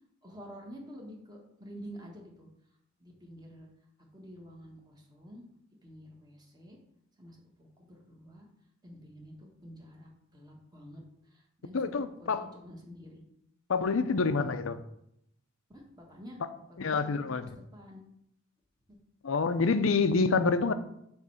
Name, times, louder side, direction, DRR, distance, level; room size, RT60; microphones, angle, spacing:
voice 1, 0.2-2.5 3.0-3.7 4.1-5.4 5.8-6.8 7.2-8.5 8.8-13.2 15.7-16.4 16.8-18.0 18.9-19.0, equal, 20° right, -1 dB, 1.6 m, -49 dB
voice 2, 11.7-12.5 13.7-14.8 16.8-17.5 19.2-20.7, left 4 dB, 85° left, 11 dB, 0.6 m, -27 dB
8.0 x 3.2 x 6.3 m, 0.76 s
head